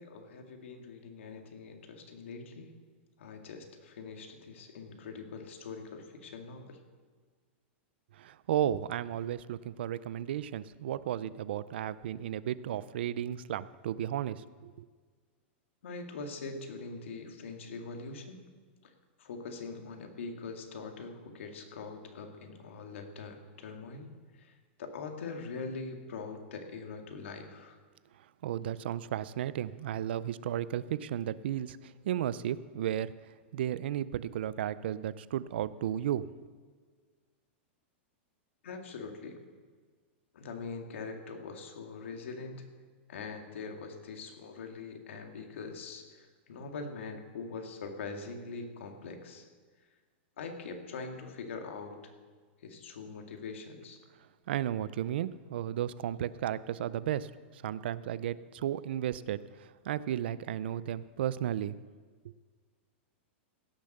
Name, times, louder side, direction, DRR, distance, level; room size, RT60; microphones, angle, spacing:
voice 1, 0.0-2.7 3.2-6.8 15.8-18.4 18.8-18.9 19.2-27.8 38.6-39.4 40.3-42.7 43.1-49.5 50.4-52.1 52.6-54.0, left 4 dB, 85° left, 4 dB, 2.0 m, -43 dB
voice 2, 8.2-14.9 28.4-33.1 33.5-36.3 54.5-57.3 57.6-59.4 59.9-61.8, right 11 dB, 60° right, 17 dB, 0.4 m, -34 dB
16.5 x 7.1 x 6.6 m, 1.5 s
supercardioid pair, 175°, 7 cm